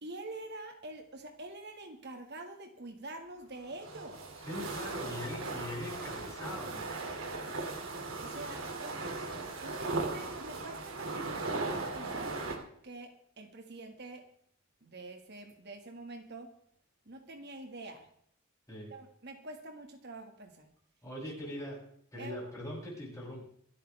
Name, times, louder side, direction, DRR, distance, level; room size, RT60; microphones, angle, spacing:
voice 1, 0.0-4.3 8.2-9.0 9.6-12.3 12.8-14.3 14.8-16.5 17.1-18.1 18.9-20.7 21.2-21.3 22.2-22.4, right 2 dB, 55° right, 4 dB, 1.8 m, -46 dB
sound 1, 3.6-12.6, right 3 dB, 80° right, 2.6 m, -38 dB
voice 2, 4.4-7.4 18.7-18.9 21.0-21.8 22.1-23.4, left 1 dB, 15° left, -5 dB, 7.8 m, -42 dB
26.5 x 9.1 x 3.4 m, 0.66 s
head